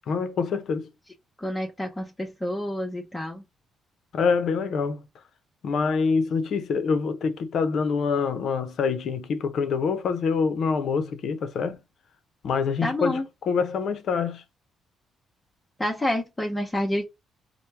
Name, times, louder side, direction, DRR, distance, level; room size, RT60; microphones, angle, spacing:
voice 1, 0.1-0.9 4.1-5.0 5.6-11.8 12.4-14.4, left 5 dB, 65° left, 0.7 m, -25 dB
voice 2, 1.4-3.4 12.8-13.3 15.8-17.1, left 1 dB, 20° left, 0.9 m, -28 dB
4.4 x 2.2 x 3.4 m
cardioid pair, 90°, 0 cm